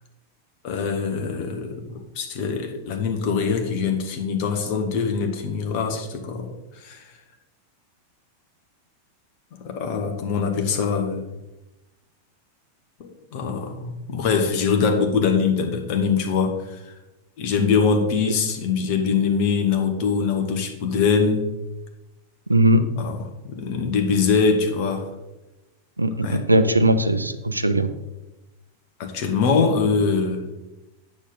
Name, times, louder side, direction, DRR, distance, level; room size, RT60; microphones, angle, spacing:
voice 1, 0.6-7.1 9.6-11.2 13.0-16.9 17.4-21.5 23.0-25.1 26.2-26.4 29.0-30.4, left 5 dB, 45° left, 3 dB, 1.4 m, -23 dB
voice 2, 22.5-22.8 26.0-27.9, right 1 dB, 85° right, 11 dB, 0.5 m, -19 dB
8.9 x 6.5 x 3.9 m, 1.0 s
figure-of-eight pair, 90°, 0 cm